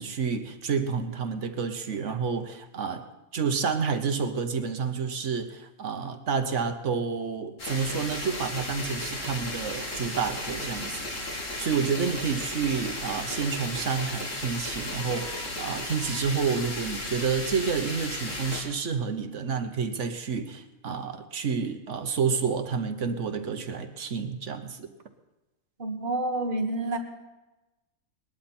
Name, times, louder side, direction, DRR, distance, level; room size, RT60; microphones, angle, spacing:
voice 1, 0.0-3.0 3.3-11.1 11.6-24.9, right 6 dB, 65° right, 8 dB, 1.3 m, -29 dB
sound 1, 7.6-18.6, left 1 dB, 70° left, 2.8 m, -35 dB
voice 2, 25.8-27.0, right 2 dB, 40° right, 3 dB, 1.7 m, -28 dB
20.0 x 12.0 x 4.3 m, 1.0 s
omnidirectional pair, 1.4 m